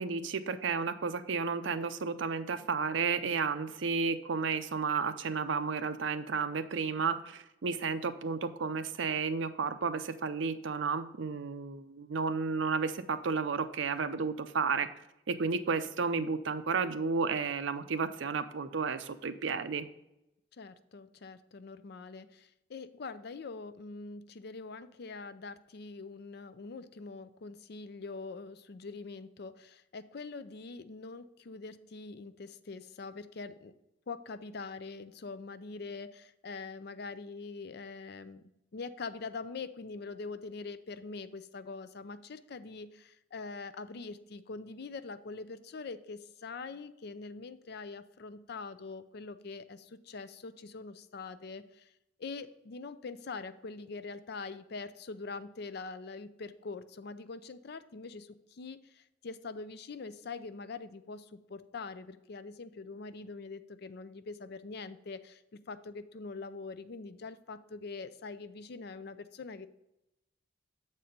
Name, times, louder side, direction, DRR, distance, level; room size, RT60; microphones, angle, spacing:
voice 1, 0.0-14.9 15.3-19.9, right 5 dB, 75° right, 11 dB, 0.5 m, -32 dB
voice 2, 20.6-33.7 34.1-51.9 52.2-69.7, left 4 dB, 55° left, 12 dB, 0.5 m, -44 dB
7.4 x 4.3 x 5.2 m, 0.87 s
head